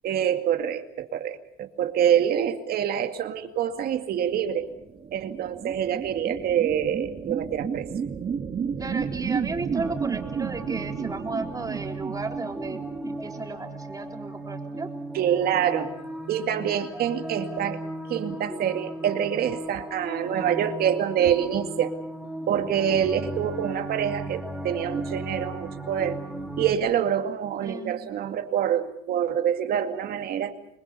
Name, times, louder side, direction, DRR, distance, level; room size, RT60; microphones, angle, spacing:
voice 1, 0.0-4.7 5.1-7.9 15.1-15.9 16.3-17.8 18.1-21.9 22.5-26.2 26.6-30.6, right 9 dB, 65° right, 7 dB, 2.3 m, -26 dB
sound 1, 4.2-13.9, right 7 dB, 40° right, 1.9 m, -33 dB
voice 2, 8.8-14.9 27.6-27.9, right 3 dB, 20° right, 2 dB, 3.9 m, -34 dB
sound 2, 9.7-26.7, right 1 dB, 5° right, 2.9 m, -36 dB
26.5 x 21.5 x 7.0 m, 0.76 s
cardioid pair, 110°, 17 cm